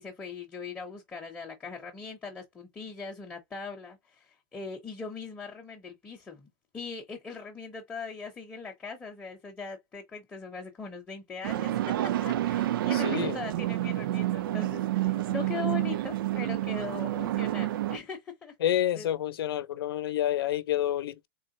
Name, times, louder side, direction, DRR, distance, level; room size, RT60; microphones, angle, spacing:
voice 1, 0.0-6.5 6.7-18.6 19.0-19.1, left 5 dB, 10° left, 0.7 m, -40 dB
sound 1, 11.4-18.0, right 14 dB, 70° right, 0.4 m, -29 dB
voice 2, 12.9-13.4 18.6-21.3, left 12 dB, 85° left, 0.7 m, -29 dB
3.8 x 3.0 x 2.6 m
supercardioid pair, 165°, 12 cm